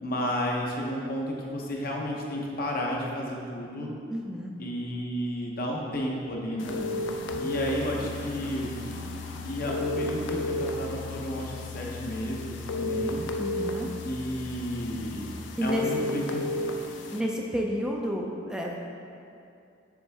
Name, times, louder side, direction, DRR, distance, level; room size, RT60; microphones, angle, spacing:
voice 1, 0.0-3.9 4.6-6.9 7.4-8.8 9.4-13.2 14.0-15.3 15.6-16.6, equal, 55° left, -1 dB, 0.9 m, -32 dB
voice 2, 4.1-4.5 13.4-13.9 15.6-15.8 17.1-18.7, equal, 5° right, -1 dB, 0.4 m, -30 dB
sound 1, 6.6-17.2, left 1 dB, 80° left, 0.5 m, -34 dB
Piano, 7.3-15.4, left 4 dB, 80° right, 1.4 m, -41 dB
7.0 x 4.4 x 3.5 m, 2.5 s
head